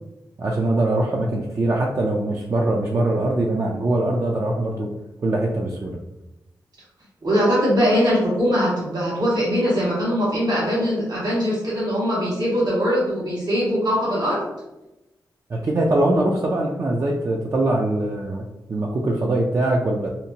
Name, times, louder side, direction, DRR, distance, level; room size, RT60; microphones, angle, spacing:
voice 1, 0.4-4.9 5.2-6.0 15.5-20.1, right 2 dB, 45° right, -2 dB, 0.4 m, -22 dB
voice 2, 7.2-14.4, equal, 65° right, -6 dB, 1.4 m, -21 dB
2.8 x 2.1 x 2.7 m, 0.96 s
cardioid pair, 50°, 8 cm